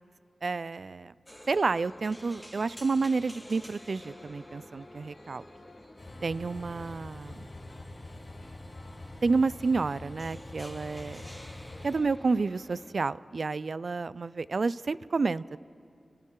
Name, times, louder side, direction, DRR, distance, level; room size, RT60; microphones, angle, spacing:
voice 1, 0.4-1.1 1.5-5.4 6.2-7.5 9.2-11.3 11.8-15.6, right 4 dB, 60° right, 17 dB, 0.3 m, -30 dB
sound 1, 1.2-12.9, equal, 5° left, 0.7 m, -51 dB
sound 2, 1.8-13.1, left 2 dB, 55° left, 1.2 m, -57 dB
Train, 6.0-12.0, left 2 dB, 35° left, 3.4 m, -45 dB
28.0 x 12.5 x 3.7 m, 2.3 s
wide cardioid pair, 75°, 0 cm